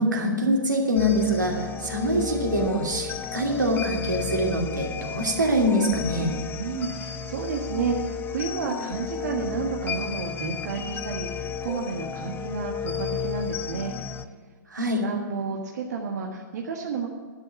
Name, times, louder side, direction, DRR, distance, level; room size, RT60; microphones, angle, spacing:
voice 1, 0.0-6.3 14.7-15.0, equal, 85° right, 0 dB, 2.6 m, -24 dB
sound 1, 1.0-14.3, left 7 dB, 20° left, 0.6 m, -33 dB
voice 2, 6.6-14.0 15.0-17.1, right 5 dB, 60° right, 1 dB, 1.4 m, -31 dB
11.5 x 7.1 x 9.3 m, 1.5 s
figure-of-eight pair, 110°, 10 cm